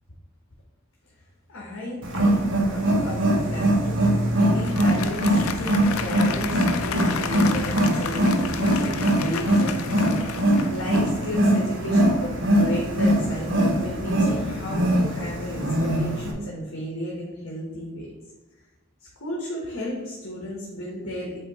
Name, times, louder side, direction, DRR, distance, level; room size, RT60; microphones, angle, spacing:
voice 1, 1.5-18.1 19.2-21.4, left 1 dB, 65° left, -3 dB, 1.3 m, -34 dB
Wild animals, 2.0-16.3, right 1 dB, 65° right, 1.2 m, -22 dB
Applause, 4.5-11.4, left 7 dB, 85° left, 0.5 m, -33 dB
8.1 x 2.9 x 4.2 m, 1.2 s
head